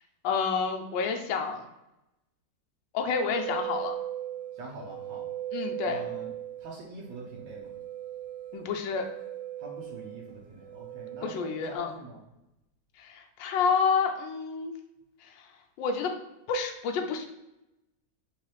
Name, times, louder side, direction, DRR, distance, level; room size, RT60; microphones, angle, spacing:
voice 1, 0.2-1.6 2.9-4.0 5.5-6.0 8.5-9.1 11.2-11.9 13.0-14.7 15.2-15.3 15.8-16.1 16.5-17.3, left 5 dB, 85° left, 4 dB, 1.3 m, -29 dB
sound 1, 3.3-11.8, right 12 dB, 40° right, 1.5 m, -38 dB
voice 2, 4.5-5.3 5.8-6.3 6.6-7.7 9.6-12.2, right 2 dB, 80° right, -3 dB, 1.5 m, -44 dB
4.7 x 3.3 x 3.1 m, 0.90 s
omnidirectional pair, 1.9 m